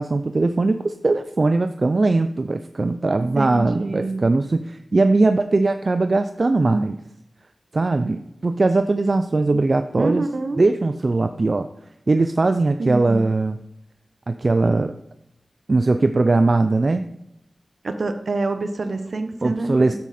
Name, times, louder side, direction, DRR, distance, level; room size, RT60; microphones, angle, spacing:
voice 1, 0.0-7.0 7.7-10.3 10.6-11.7 12.1-13.6 14.3-14.9 15.7-17.1 19.4-19.9, right 3 dB, 55° right, 8 dB, 0.5 m, -20 dB
voice 2, 3.2-4.3 10.0-10.6 12.8-13.3 17.8-19.9, right 2 dB, 70° right, 8 dB, 1.0 m, -27 dB
9.4 x 7.2 x 4.3 m, 0.80 s
cardioid pair, 50°, 0 cm